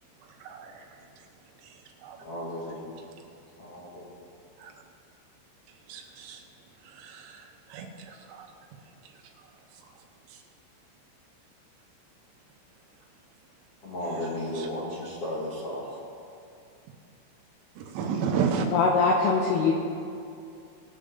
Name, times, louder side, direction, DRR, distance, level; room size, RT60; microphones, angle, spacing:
voice 1, 2.2-3.2 3.6-4.1 13.8-15.9, left 1 dB, 65° left, -7 dB, 1.5 m, -35 dB
voice 2, 5.9-6.4 7.0-7.4 7.7-8.5 17.9-18.7, right 6 dB, 80° right, 2 dB, 3.5 m, -31 dB
voice 3, 18.7-19.7, left 4 dB, 85° left, -1 dB, 2.3 m, -22 dB
21.0 x 8.3 x 3.8 m, 2.5 s
omnidirectional pair, 5.9 m